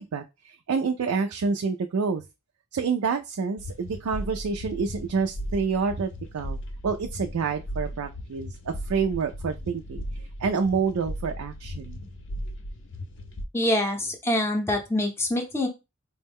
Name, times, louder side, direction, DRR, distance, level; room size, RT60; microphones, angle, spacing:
voice 1, 0.0-2.2 2.7-6.6 6.8-10.0 10.4-12.0, right 5 dB, 70° right, 5 dB, 0.4 m, -28 dB
sound 1, 3.6-13.4, equal, 55° left, 0.5 m, -37 dB
voice 2, 13.5-15.7, left 1 dB, 10° left, 2 dB, 0.6 m, -25 dB
4.3 x 2.1 x 3.4 m, 0.25 s
head